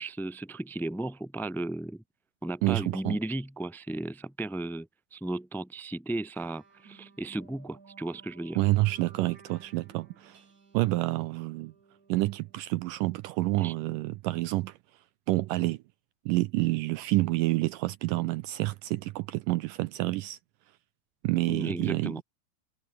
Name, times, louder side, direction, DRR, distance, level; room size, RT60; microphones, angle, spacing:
voice 1, 0.0-2.0 2.4-8.6 13.6-13.7 21.5-22.2, right 2 dB, ahead, 1.2 m, -35 dB
voice 2, 2.6-3.2 8.6-10.4 10.7-11.7 12.1-14.8 15.3-15.8 16.3-20.4 21.2-22.2, right 19 dB, 80° right, 2.0 m, -28 dB
sound 1, 6.3-13.2, right 5 dB, 55° right, 6.3 m, -56 dB
omnidirectional pair, 4.2 m